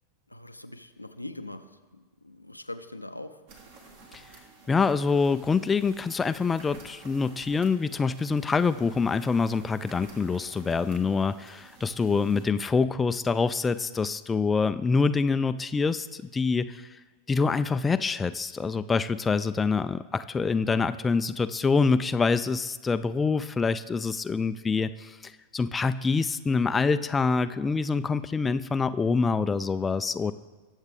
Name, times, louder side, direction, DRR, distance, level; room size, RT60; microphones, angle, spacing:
voice 1, 0.3-3.4 30.3-30.4, left 1 dB, 85° left, 8 dB, 0.6 m, -42 dB
sound 1, 3.5-12.4, right 3 dB, 50° right, 1.9 m, -52 dB
voice 2, 4.7-17.0 17.3-30.3, left 4 dB, 15° left, 11 dB, 0.4 m, -26 dB
21.0 x 7.3 x 3.4 m, 1.3 s
figure-of-eight pair, 90°, 0 cm